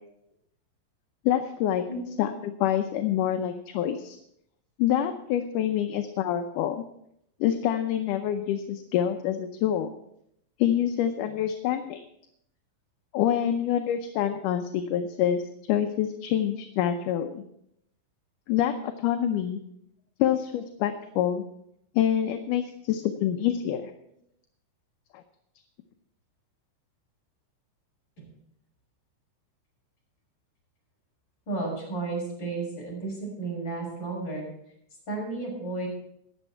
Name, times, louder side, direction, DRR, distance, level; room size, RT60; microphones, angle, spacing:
voice 1, 1.3-1.8 2.2-4.2 4.8-6.8 7.4-9.9 10.6-12.0 13.1-15.4 15.7-17.4 18.5-19.6 20.2-21.4 22.0-23.9, left 10 dB, 75° left, 6 dB, 2.2 m, -26 dB
voice 2, 31.5-34.4 35.1-35.9, right 3 dB, 30° left, -3 dB, 6.9 m, -33 dB
21.0 x 7.2 x 4.5 m, 0.76 s
omnidirectional pair, 4.0 m